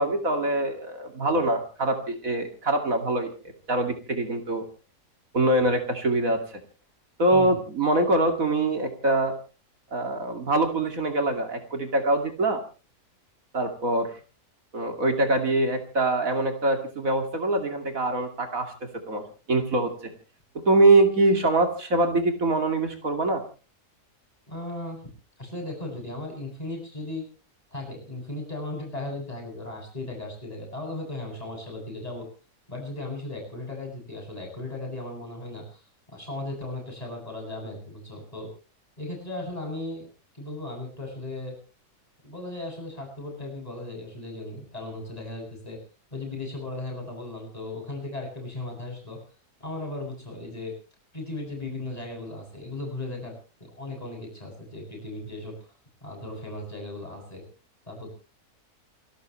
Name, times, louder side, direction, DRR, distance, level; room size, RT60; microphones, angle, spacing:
voice 1, 0.0-3.3 3.7-4.6 5.3-6.4 7.2-9.3 9.9-12.6 13.5-14.1 14.7-19.2 19.5-20.1 20.7-23.4, right 2 dB, 60° right, 4 dB, 3.0 m, -24 dB
voice 2, 24.5-25.0 25.4-27.2 27.7-32.3 32.7-35.8 36.1-38.5 39.0-40.1 40.3-41.6 42.2-45.8 46.1-49.2 49.6-50.7 51.1-55.5 56.0-57.4 57.9-58.1, left 2 dB, 25° left, 1 dB, 8.3 m, -36 dB
29.0 x 13.0 x 3.2 m, 0.35 s
omnidirectional pair, 1.7 m